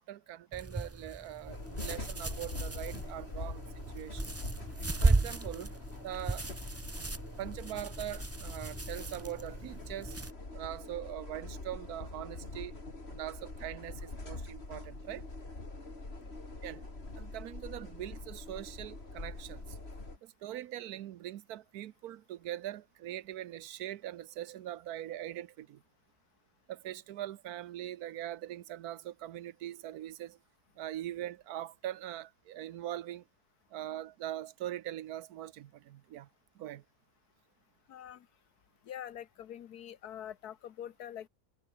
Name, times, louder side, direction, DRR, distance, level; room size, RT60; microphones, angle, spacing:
voice 1, 0.0-4.4 5.0-5.7 6.0-6.5 7.4-10.2 10.5-12.7 13.1-15.3 16.6-16.9 17.2-19.8 20.2-25.8 26.7-30.4 30.8-33.2 33.7-36.3 36.5-36.8, right 12 dB, 75° right, 1.2 m, -42 dB
sound 1, 0.5-10.3, right 2 dB, 20° right, 0.4 m, -35 dB
sound 2, 1.5-20.2, left 2 dB, 40° left, 4.0 m, -44 dB
voice 2, 37.9-38.3 38.8-41.3, left 10 dB, 80° left, 1.5 m, -45 dB
omnidirectional pair, 1.6 m